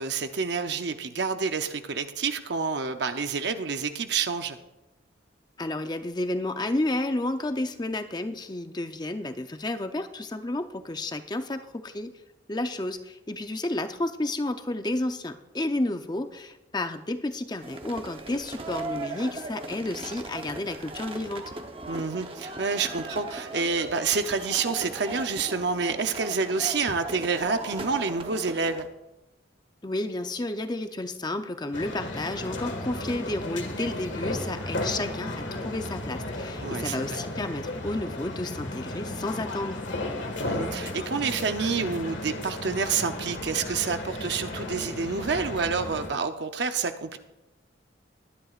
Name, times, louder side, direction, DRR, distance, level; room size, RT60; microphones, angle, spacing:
voice 1, 0.0-4.6 21.9-28.9 36.6-37.2 40.4-47.2, right 5 dB, 60° right, 8 dB, 0.7 m, -28 dB
voice 2, 5.6-12.1 12.5-21.4 29.8-39.8, left 2 dB, 20° left, 8 dB, 0.6 m, -31 dB
sound 1, 17.6-28.9, right 2 dB, 30° right, 0.9 m, -38 dB
sound 2, 31.7-46.1, left 1 dB, 70° left, 1.8 m, -34 dB
21.5 x 10.5 x 2.5 m, 0.98 s
head